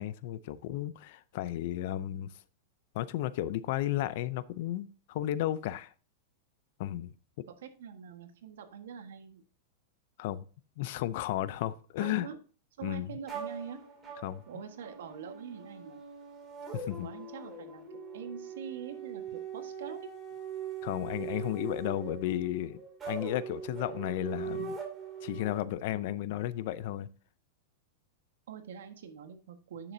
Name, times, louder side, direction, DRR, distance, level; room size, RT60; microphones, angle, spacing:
voice 1, 0.0-2.3 2.9-5.9 6.8-7.1 10.2-10.4 10.8-12.3 12.8-13.1 14.2-14.4 16.7-17.1 20.8-22.8 23.1-24.8 25.2-27.1, left 13 dB, 55° left, 0.5 m, -33 dB
voice 2, 7.5-9.4 12.0-12.4 12.8-13.8 14.5-16.0 17.0-17.9 18.1-20.1 28.5-29.9, right 7 dB, 80° right, 1.5 m, -44 dB
sound 1, 13.3-25.6, right 6 dB, 15° right, 2.6 m, -41 dB
9.9 x 7.0 x 2.7 m
supercardioid pair, 160°, 0 cm